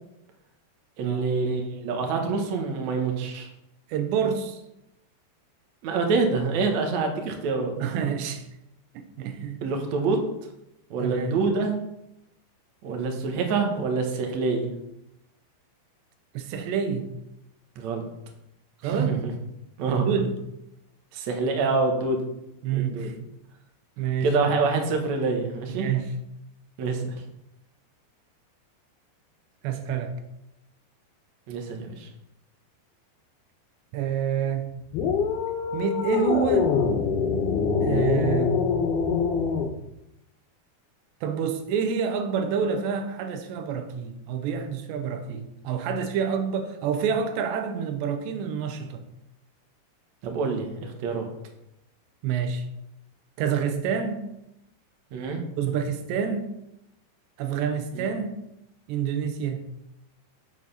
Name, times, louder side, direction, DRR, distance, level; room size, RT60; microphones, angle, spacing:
voice 1, 1.0-3.5 5.8-7.7 9.6-10.2 10.9-11.8 12.8-14.7 17.8-18.1 18.8-19.3 19.8-20.1 21.1-22.2 22.7-23.1 24.2-25.9 26.8-27.2 31.5-32.1 50.2-51.3 55.1-55.4 57.9-58.1, right 4 dB, 60° right, 3 dB, 2.1 m, -26 dB
voice 2, 3.9-4.6 7.8-8.4 8.9-9.6 11.0-11.3 16.3-17.1 18.8-19.2 19.9-20.4 22.6-23.1 24.0-24.3 25.7-26.1 29.6-30.2 33.9-34.7 35.7-36.7 37.8-38.6 41.2-49.0 52.2-52.7 53.4-54.3 55.6-56.6 57.4-58.4 58.9-59.7, right 7 dB, 85° right, 7 dB, 3.1 m, -28 dB
sound 1, 34.9-39.7, left 6 dB, 70° left, 2.8 m, -24 dB
7.6 x 7.5 x 5.8 m, 0.85 s
omnidirectional pair, 4.9 m